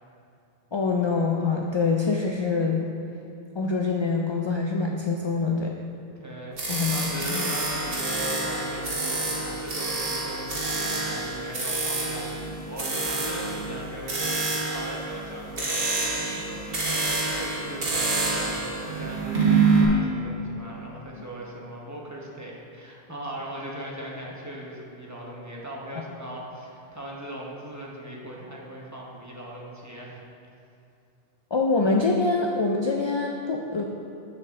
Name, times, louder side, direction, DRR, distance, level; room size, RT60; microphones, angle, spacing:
voice 1, 0.7-2.9 3.6-5.7 6.7-7.5 31.5-33.8, left 4 dB, 50° left, 1 dB, 0.3 m, -25 dB
voice 2, 6.1-6.6 6.9-30.2, right 1 dB, 20° right, -3 dB, 0.9 m, -39 dB
sound 1, 6.6-19.8, right 3 dB, 65° right, 1.5 m, -27 dB
7.4 x 6.5 x 3.6 m, 2.6 s
omnidirectional pair, 1.0 m